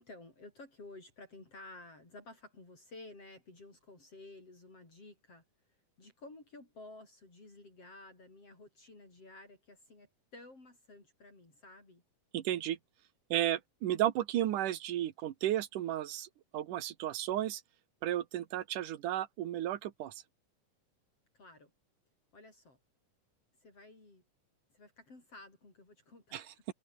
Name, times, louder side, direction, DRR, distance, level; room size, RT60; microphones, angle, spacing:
voice 1, 0.0-5.4 6.0-12.0 21.3-21.7 22.3-22.8 23.6-24.2 24.7-26.6, left 2 dB, 45° left, 8.2 m, -53 dB
voice 2, 12.3-12.8 13.3-17.6 18.0-20.1 26.3-26.4, right 12 dB, 80° right, 2.9 m, -33 dB
omnidirectional pair, 3.7 m